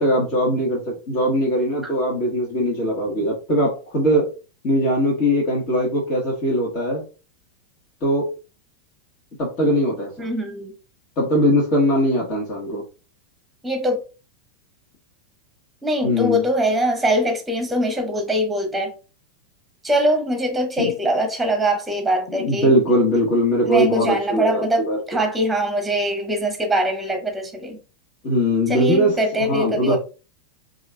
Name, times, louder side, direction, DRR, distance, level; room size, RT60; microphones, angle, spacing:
voice 1, 0.0-4.3 4.6-7.1 8.0-8.2 9.4-10.3 11.2-12.8 16.0-16.4 20.8-20.9 22.3-25.0 28.2-30.0, equal, 40° left, 1.6 m, -20 dB
voice 2, 10.2-10.7 13.6-14.0 15.8-18.9 19.8-23.0 23.6-27.8 28.7-30.0, equal, 5° right, 1.2 m, -22 dB
4.8 x 2.6 x 3.3 m
figure-of-eight pair, 90°, 0 cm